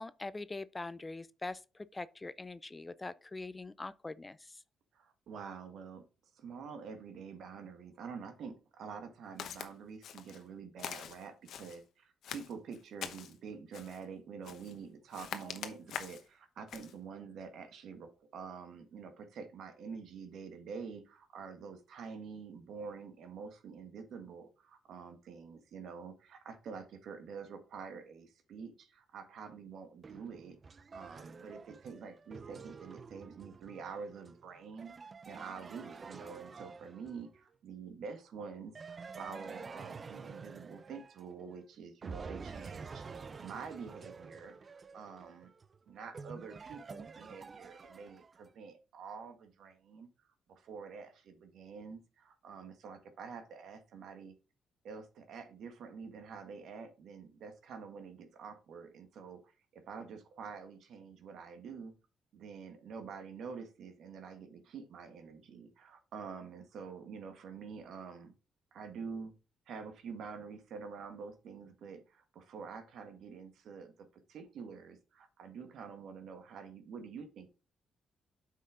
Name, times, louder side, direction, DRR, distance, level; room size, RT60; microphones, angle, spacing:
voice 1, 0.0-4.6, left 3 dB, 20° left, 0.4 m, -43 dB
voice 2, 4.9-6.0 6.3-30.6 30.9-45.5 45.9-50.1 50.5-54.3 54.8-59.4 59.7-61.9 62.3-68.3 68.7-69.3 69.7-77.5, right 5 dB, 70° right, 1.6 m, -47 dB
Walk footsteps, 9.4-9.7 10.0-10.4 10.8-11.8 12.2-13.4 13.7-14.0 14.4-14.8 15.1-16.3 16.7-16.9, left 8 dB, 70° left, 0.9 m, -44 dB
sound 1, 30.0-37.4 38.8-41.6 42.0-48.5, right 5 dB, 35° right, 0.5 m, -49 dB
8.3 x 5.6 x 3.7 m
cardioid pair, 90°, 0 cm